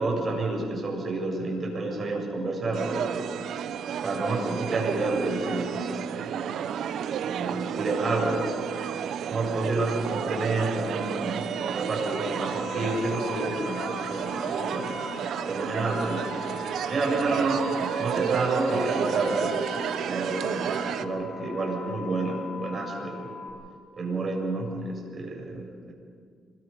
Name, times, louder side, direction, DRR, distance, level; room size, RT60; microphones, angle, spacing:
voice 1, 0.0-3.3 4.0-6.4 7.2-8.6 9.3-15.0 15.5-16.3 16.9-23.3 24.0-25.9, right 2 dB, 40° right, 0 dB, 7.1 m, -29 dB
sound 1, 2.7-21.0, right 8 dB, 70° right, 1.0 m, -31 dB
sound 2, 9.9-10.0 10.6-10.9 11.4-11.6 12.0-12.3 12.8-13.1 13.8-14.0 14.6-14.8 15.4-15.6 16.2-16.5 17.0-17.2 17.8-18.0 18.7-18.9, left 4 dB, 50° left, 3.9 m, -46 dB
sound 3, 12.2-23.5, left 5 dB, 30° left, 7.8 m, -41 dB
27.0 x 21.5 x 5.5 m, 2.1 s
cardioid pair, 90°, 0 cm